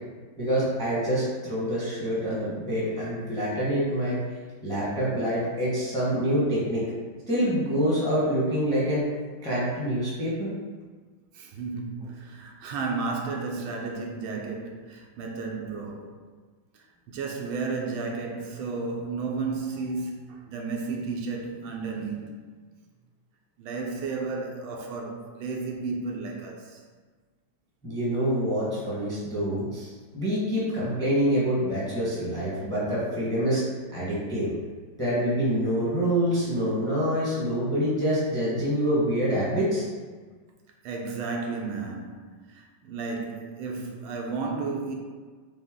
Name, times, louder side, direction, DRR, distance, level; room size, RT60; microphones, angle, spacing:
voice 1, 0.4-4.2 4.6-6.8 7.3-9.0 9.4-10.5 27.8-29.9 30.1-33.6 33.9-34.5 35.0-39.8, equal, 5° left, 0.8 m, -26 dB
voice 2, 11.3-16.2 17.1-22.3 23.6-26.8 40.8-44.9, right 4 dB, 85° right, 1.5 m, -33 dB
5.0 x 2.1 x 3.6 m
omnidirectional pair, 2.2 m